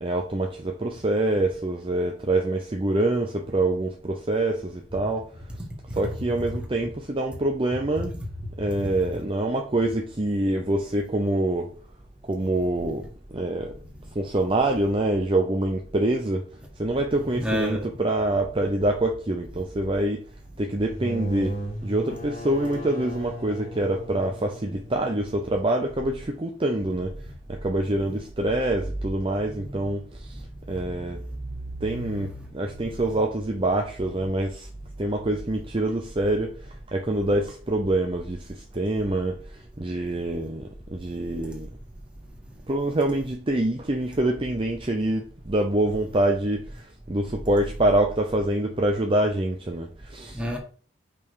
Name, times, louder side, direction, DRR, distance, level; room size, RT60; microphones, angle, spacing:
voice 1, 0.0-5.3 5.9-8.2 8.6-11.7 12.2-13.8 14.1-16.5 16.8-20.2 20.6-27.2 27.5-30.4 30.7-31.2 31.8-34.7 35.0-41.7 42.7-50.4, right 1 dB, 25° right, 0.7 m, -26 dB
voice 2, 17.3-17.9 30.3-30.4 30.8-31.1 31.4-31.8 32.4-32.5 50.3-50.6, equal, 5° right, 1.8 m, -30 dB
sound 1, 20.8-26.4, right 1 dB, 45° left, 2.7 m, -37 dB
5.3 x 5.3 x 4.7 m
head